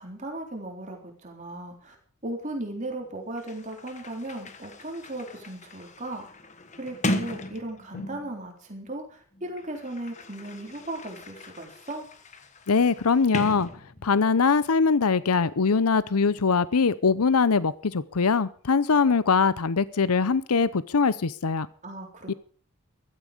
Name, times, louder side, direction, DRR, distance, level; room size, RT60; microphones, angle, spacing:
voice 1, 0.0-2.0 2.2-6.3 6.8-12.1 21.8-22.3, right 1 dB, 35° right, 2 dB, 3.7 m, -36 dB
Sliding door, 3.0-3.1 3.3-8.4 9.3-14.3, left 1 dB, 30° left, 1.3 m, -37 dB
voice 2, 12.7-13.7 14.0-21.7 22.3-22.4, left 5 dB, 90° left, 17 dB, 0.7 m, -22 dB
16.0 x 13.0 x 5.1 m, 0.43 s
head